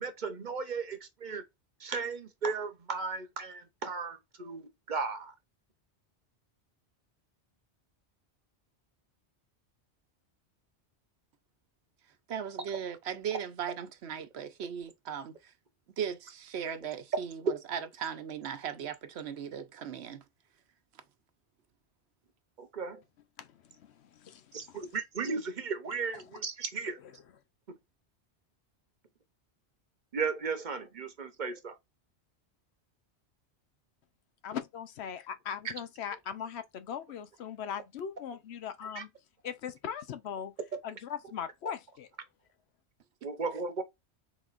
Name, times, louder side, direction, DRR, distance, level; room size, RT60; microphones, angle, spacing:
voice 1, 0.0-1.4 1.8-5.3 22.6-23.0 24.5-27.0 27.7-27.8 30.1-31.8 35.6-35.7 38.9-39.0 43.2-43.8, right 4 dB, 45° right, 1.0 m, -35 dB
voice 2, 12.3-15.5 16.0-20.2, right 8 dB, 70° right, 1.0 m, -38 dB
voice 3, 23.4-24.9 27.0-27.1 34.4-39.1 39.4-40.5 40.8-42.1, left 8 dB, 75° left, 0.9 m, -40 dB
5.0 x 3.7 x 2.5 m
omnidirectional pair, 1.1 m